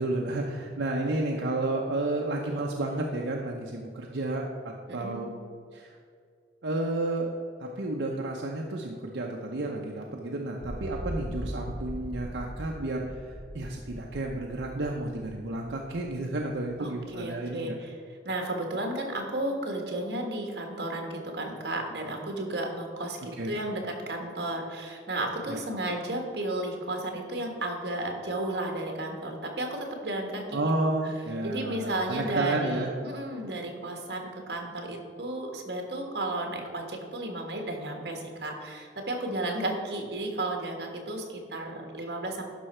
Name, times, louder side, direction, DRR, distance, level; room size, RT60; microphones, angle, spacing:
voice 1, 0.0-5.3 5.7-6.0 6.6-17.8 23.4-23.6 25.5-25.6 30.5-32.9, right 2 dB, 80° right, 0 dB, 0.8 m, -31 dB
voice 2, 4.9-5.2 16.8-17.9 18.2-30.6 31.4-34.2 34.5-42.4, right 1 dB, 65° right, 2 dB, 1.5 m, -33 dB
sound 1, 10.6-16.6, equal, 55° left, 2.0 m, -40 dB
11.5 x 5.7 x 4.4 m, 2.2 s
head